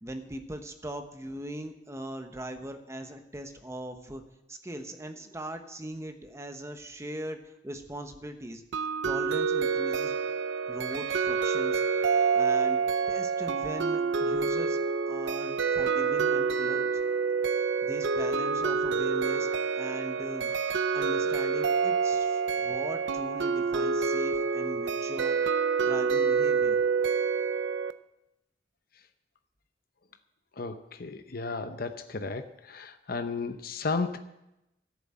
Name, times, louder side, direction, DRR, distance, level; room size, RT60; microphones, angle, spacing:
voice 1, 0.0-4.2 4.5-8.6 9.0-10.1 10.7-12.8 13.1-14.8 15.1-17.0 17.8-19.5 19.8-20.5 20.9-26.8, right 1 dB, 15° right, 6 dB, 1.1 m, -40 dB
sound 1, 8.7-27.9, right 5 dB, 90° right, 0.6 m, -27 dB
voice 2, 30.6-32.4 32.7-34.2, left 4 dB, 55° left, 9 dB, 0.7 m, -33 dB
13.5 x 7.4 x 8.7 m, 0.90 s
head